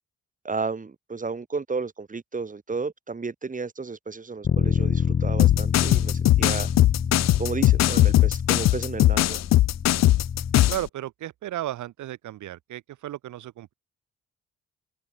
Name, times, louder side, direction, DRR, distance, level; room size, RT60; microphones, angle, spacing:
voice 1, 0.4-6.7 7.4-9.4, right 4 dB, 25° right, 2.5 m, -33 dB
Bass guitar, 4.4-10.7, left 6 dB, 30° left, 0.9 m, -27 dB
sound 1, 5.4-10.8, left 15 dB, 60° left, 0.5 m, -19 dB
voice 2, 10.7-13.7, right 13 dB, 75° right, 1.8 m, -34 dB
cardioid pair, 90°, 30 cm